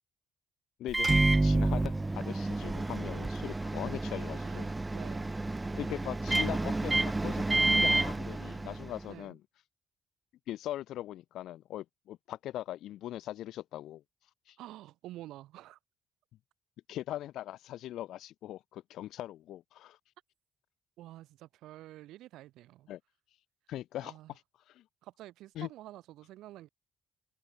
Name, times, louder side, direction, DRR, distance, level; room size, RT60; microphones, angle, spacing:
voice 1, 0.8-4.7 5.7-9.4 10.5-14.0 14.5-14.6 16.9-20.0 22.9-23.0 23.7-24.1 24.8-24.9 25.6-25.7, left 13 dB, 80° left, 0.6 m, -40 dB
Microwave oven, 0.9-9.1, right 2 dB, 15° right, 0.4 m, -29 dB
voice 2, 4.4-5.4 9.1-9.4 14.6-15.8 21.0-22.9 24.0-24.3 25.0-26.7, right 15 dB, 90° right, 1.3 m, -49 dB
cardioid pair, 90°, 0 cm